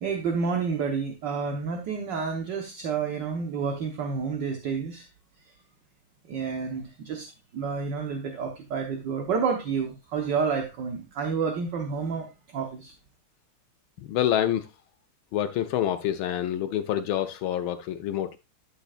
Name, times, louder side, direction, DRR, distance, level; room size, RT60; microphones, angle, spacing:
voice 1, 0.0-5.1 5.5-5.6 6.3-12.9, right 5 dB, 60° right, 1.7 m, -30 dB
voice 2, 14.1-14.7 15.3-18.4, left 11 dB, 75° left, 1.3 m, -27 dB
12.0 x 6.6 x 2.4 m
omnidirectional pair, 2.3 m